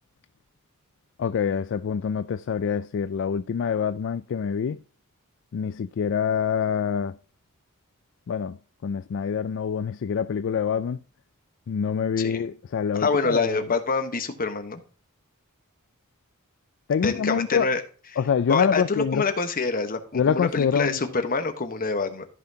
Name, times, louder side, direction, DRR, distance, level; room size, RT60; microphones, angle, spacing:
voice 1, 1.2-4.8 5.5-7.1 8.3-11.0 11.7-13.6 16.9-17.7 18.2-19.2 20.1-21.0, left 7 dB, 55° left, 0.3 m, -25 dB
voice 2, 12.9-14.8 17.0-17.8 18.5-22.3, left 4 dB, 40° left, 1.2 m, -26 dB
14.0 x 5.7 x 2.8 m
head